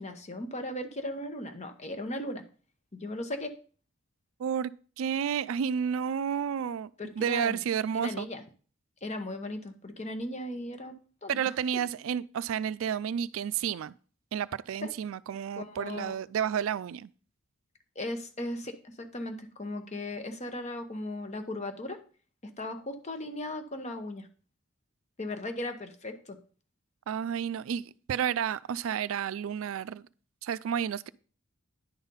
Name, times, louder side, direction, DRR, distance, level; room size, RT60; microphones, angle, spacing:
voice 1, 0.0-2.4 2.9-3.6 7.0-7.6 7.9-8.4 9.0-10.9 11.2-11.5 14.8-14.9 15.6-16.2 17.9-22.0 22.6-24.3 25.2-26.4, left 1 dB, 35° left, 1.0 m, -37 dB
voice 2, 4.4-6.9 7.2-8.3 11.3-13.9 14.3-17.1 27.1-30.0 30.4-31.1, right 8 dB, 75° right, 0.3 m, -31 dB
10.5 x 4.0 x 5.4 m
head